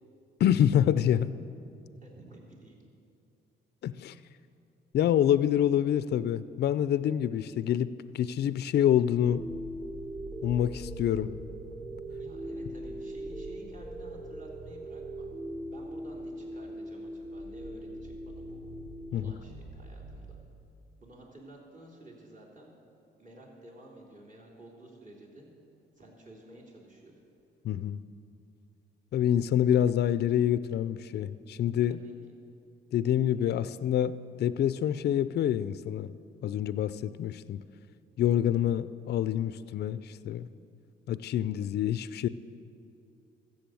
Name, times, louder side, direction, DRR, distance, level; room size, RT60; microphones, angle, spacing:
voice 1, 0.4-1.3 3.8-4.1 4.9-9.5 10.4-11.3 19.1-19.3 27.6-28.0 29.1-32.0 32.9-36.1 36.4-37.6 38.2-40.5 41.1-42.3, left 10 dB, 55° left, 15 dB, 0.4 m, -27 dB
voice 2, 1.9-2.9 12.2-15.3 15.7-18.6 19.1-20.4 21.0-22.7 23.2-25.5 26.0-27.1 31.9-32.1, right 1 dB, 40° right, -3 dB, 3.5 m, -52 dB
sound 1, 9.2-20.3, equal, 55° right, 1.9 m, -48 dB
sound 2, 9.3-19.3, right 1 dB, 20° right, 1.4 m, -41 dB
14.0 x 7.7 x 7.7 m, 2.6 s
cardioid pair, 90°, 20 cm